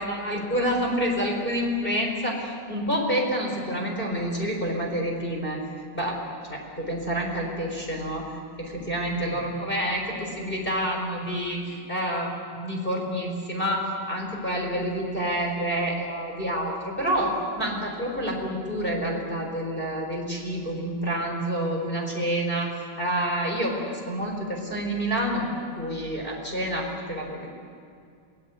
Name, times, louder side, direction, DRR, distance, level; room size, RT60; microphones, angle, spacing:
voice 1, 0.0-5.6 5.9-6.2 6.4-8.3 8.6-22.7 23.0-25.4 25.8-27.5, equal, 10° left, -1 dB, 3.9 m, -28 dB
28.0 x 19.5 x 8.3 m, 2.3 s
omnidirectional pair, 4.9 m